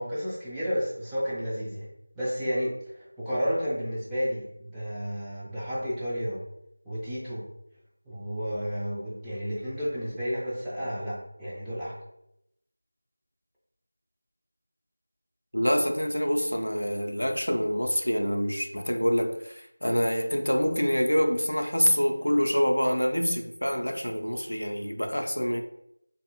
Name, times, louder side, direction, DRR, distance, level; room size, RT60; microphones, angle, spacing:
voice 1, 0.0-1.9 2.2-6.4 6.8-7.5 8.1-12.0, equal, 5° right, -12 dB, 0.4 m, -31 dB
voice 2, 15.5-25.6, equal, 75° left, 4 dB, 0.4 m, -26 dB
2.5 x 2.4 x 2.8 m, 0.81 s
figure-of-eight pair, 170°, 0 cm